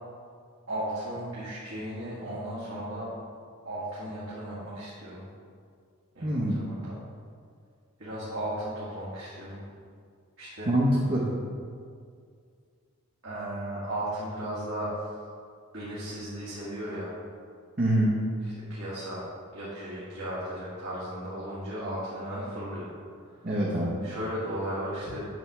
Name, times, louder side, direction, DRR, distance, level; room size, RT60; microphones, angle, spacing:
voice 1, 0.7-3.1 3.6-5.2 6.1-6.9 8.0-9.6 10.4-10.7 13.2-14.9 15.7-17.1 18.7-19.2 19.5-22.9 24.0-25.3, right 1 dB, 65° right, -10 dB, 1.8 m, -35 dB
voice 2, 6.2-6.6 10.7-11.3 17.8-18.1 23.4-24.0, right 1 dB, 40° right, -6 dB, 1.0 m, -25 dB
9.0 x 3.4 x 6.1 m, 2.1 s
head